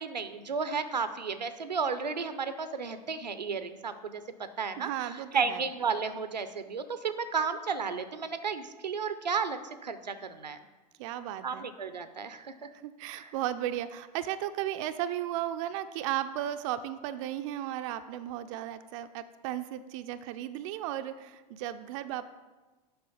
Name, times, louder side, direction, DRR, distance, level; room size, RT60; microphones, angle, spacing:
voice 1, 0.0-4.2 4.6-10.6 11.4-12.7 13.1-13.3, right 5 dB, 85° right, 11 dB, 0.6 m, -33 dB
voice 2, 4.8-5.6 11.0-11.7 12.8-22.3, right 12 dB, 50° right, 10 dB, 0.5 m, -35 dB
7.8 x 5.5 x 5.5 m, 1.2 s
figure-of-eight pair, 90°, 21 cm